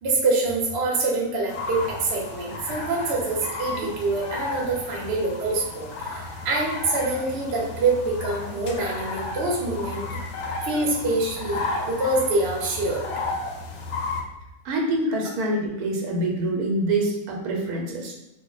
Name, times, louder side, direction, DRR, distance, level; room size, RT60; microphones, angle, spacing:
voice 1, 0.0-10.0 10.6-13.0, right 2 dB, 55° right, -2 dB, 0.9 m, -25 dB
sound 1, 1.5-14.2, left 3 dB, 65° left, 0.7 m, -33 dB
voice 2, 14.6-18.2, right 1 dB, 85° right, 0 dB, 1.1 m, -25 dB
2.4 x 2.0 x 3.8 m, 0.92 s
omnidirectional pair, 1.6 m